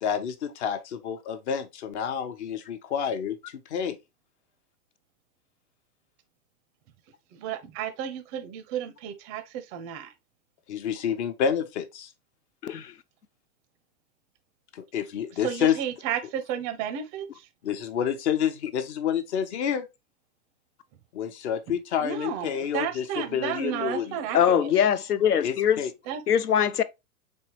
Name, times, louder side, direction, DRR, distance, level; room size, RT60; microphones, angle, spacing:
voice 1, 0.0-3.4 3.7-4.0 10.7-12.1 14.7-15.8 17.6-19.9 21.1-24.1 25.4-25.9, left 8 dB, 50° left, 0.8 m, -28 dB
voice 2, 7.3-10.1 15.4-17.5 22.0-24.7 26.1-26.2, right 9 dB, 20° right, 0.4 m, -32 dB
voice 3, 12.6-12.9 24.3-25.8 26.3-26.8, left 9 dB, 90° left, 0.6 m, -22 dB
4.5 x 3.1 x 3.0 m
figure-of-eight pair, 110°, 45 cm